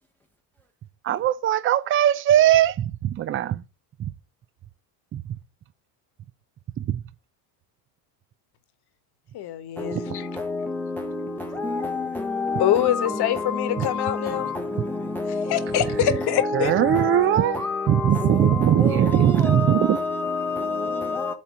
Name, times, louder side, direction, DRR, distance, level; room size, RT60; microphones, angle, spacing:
voice 1, 1.0-3.6 4.0-4.1 5.1-5.2 6.8-7.0 9.9-10.0 13.8-13.9 16.5-17.6 17.9-20.0, right 11 dB, 30° right, 0.4 m, -20 dB
voice 2, 9.3-10.3 12.6-14.5 15.5-16.7, left 11 dB, 55° left, 1.2 m, -25 dB
voice 3, 13.4-14.5 16.4-16.6 17.6-18.6 19.5-21.3, left 4 dB, 5° left, 0.8 m, -28 dB
8.5 x 2.9 x 6.1 m
supercardioid pair, 100°, 47 cm